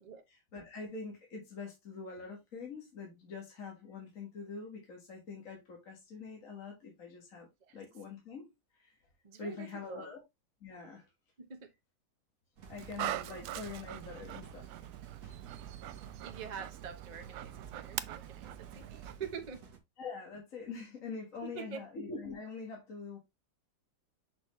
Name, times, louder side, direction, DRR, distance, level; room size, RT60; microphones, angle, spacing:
voice 1, 0.3-7.5 7.7-9.0 9.4-10.2 10.6-11.1 12.7-14.6 15.2-15.4 16.0-16.1 20.0-23.2, left 4 dB, 50° left, 1.9 m, -44 dB
voice 2, 9.2-10.1 11.4-11.7 12.8-12.9 16.2-19.6 21.4-21.8, right 6 dB, 30° right, 0.8 m, -46 dB
sound 1, 12.6-19.8, right 6 dB, 55° right, 1.6 m, -53 dB
Dog, 12.7-19.2, right 12 dB, 75° right, 1.1 m, -43 dB
6.1 x 5.9 x 3.1 m
omnidirectional pair, 1.9 m